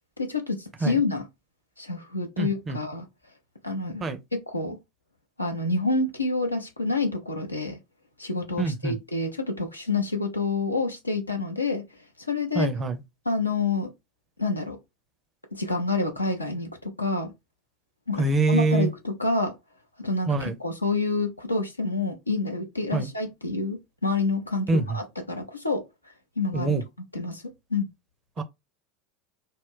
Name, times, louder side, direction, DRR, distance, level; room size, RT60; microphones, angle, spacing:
voice 1, 0.2-1.2 1.8-3.1 3.6-4.8 5.4-7.8 8.2-11.8 12.3-12.7 13.3-13.9 14.4-14.8 15.5-17.3 18.1-19.5 20.0-25.8 26.4-26.7 27.1-27.4 27.7-27.9, left 3 dB, 85° left, 0.6 m, -28 dB
voice 2, 2.4-2.8 4.0-4.2 8.6-9.0 12.5-13.0 18.2-18.9 20.3-20.6 22.9-23.1 24.7-25.0 26.5-26.8 28.4-28.5, right 3 dB, 25° right, 0.5 m, -25 dB
2.3 x 2.1 x 3.6 m
figure-of-eight pair, 75°, 0 cm